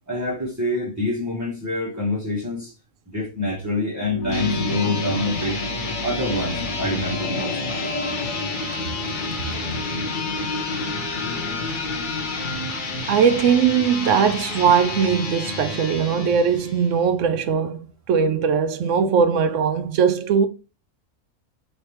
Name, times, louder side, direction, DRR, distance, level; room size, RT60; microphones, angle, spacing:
voice 1, 0.1-2.7 3.1-5.6 6.0-7.6 15.5-15.7, left 1 dB, 15° right, 0.8 m, -26 dB
sound 1, 3.8-14.3 14.9-15.0, left 2 dB, 90° left, 1.2 m, -31 dB
sound 2, 4.2-17.0, left 3 dB, 40° left, 0.9 m, -30 dB
voice 2, 13.1-20.5, right 7 dB, 70° right, 0.9 m, -20 dB
4.8 x 3.3 x 2.9 m
omnidirectional pair, 1.4 m